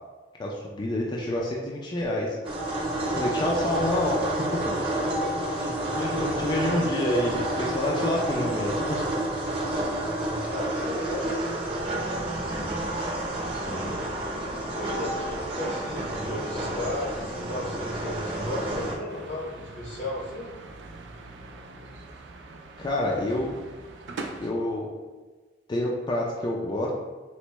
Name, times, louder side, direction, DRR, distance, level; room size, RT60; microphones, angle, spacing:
voice 1, 0.4-2.4 3.0-4.7 5.9-9.0 13.5-14.0 22.8-23.5 24.4-24.9 25.7-26.9, left 1 dB, 25° left, -2 dB, 0.3 m, -28 dB
sound 1, 2.4-19.0, right 1 dB, 30° right, 0.7 m, -30 dB
voice 2, 5.1-5.7 10.0-11.4 14.6-20.5, left 1 dB, 85° left, -4 dB, 1.1 m, -35 dB
sound 2, 19.1-24.5, right 3 dB, 75° right, 0.4 m, -42 dB
4.3 x 2.1 x 3.0 m, 1.3 s
head